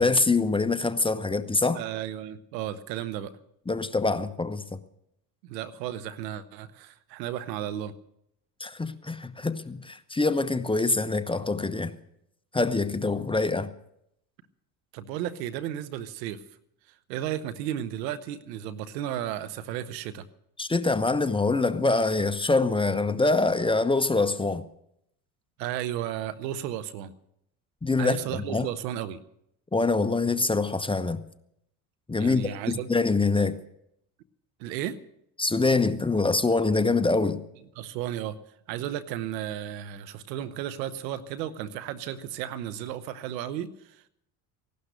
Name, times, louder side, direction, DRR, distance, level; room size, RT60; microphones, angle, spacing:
voice 1, 0.0-1.8 3.7-4.8 8.6-11.9 12.5-13.7 20.6-24.6 27.8-28.2 28.5-28.7 29.7-31.2 32.1-33.6 35.4-37.4, left 3 dB, 10° left, 0.9 m, -25 dB
voice 2, 1.7-3.4 5.4-7.9 13.3-13.4 14.9-16.4 17.1-20.3 25.6-27.1 28.0-29.2 32.2-32.9 34.6-35.0 37.8-38.4 38.7-44.1, right 11 dB, 80° right, 1.0 m, -34 dB
16.5 x 12.0 x 6.6 m
hypercardioid pair, 70°, 50 cm